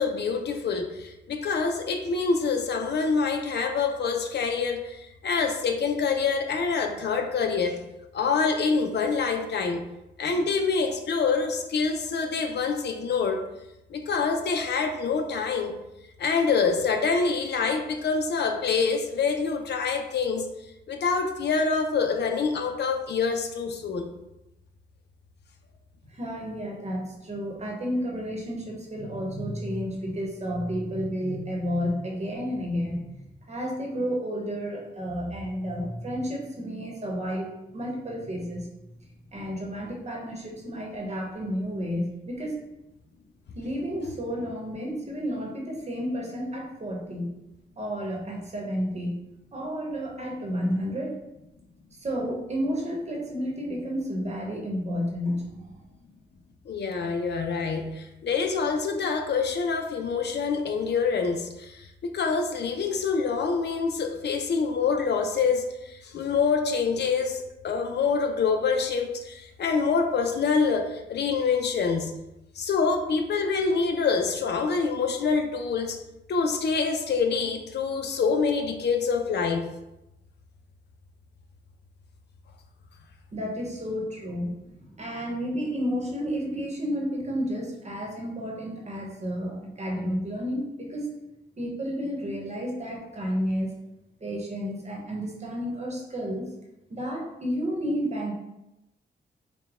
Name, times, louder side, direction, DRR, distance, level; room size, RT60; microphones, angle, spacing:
voice 1, 0.0-7.8 8.1-9.8 10.2-13.4 13.9-15.8 16.2-20.5 20.9-24.1 56.7-72.1 72.6-76.0 76.3-79.7, left 5 dB, 70° left, 4 dB, 0.5 m, -26 dB
voice 2, 26.1-38.7 39.3-42.5 43.6-47.3 47.8-49.2 49.5-51.2 52.0-55.7 83.3-84.5 85.0-91.1 91.6-93.7 94.2-96.4 96.9-98.3, equal, 40° right, -1 dB, 1.0 m, -31 dB
4.9 x 2.2 x 3.6 m, 0.91 s
wide cardioid pair, 115°, 18 cm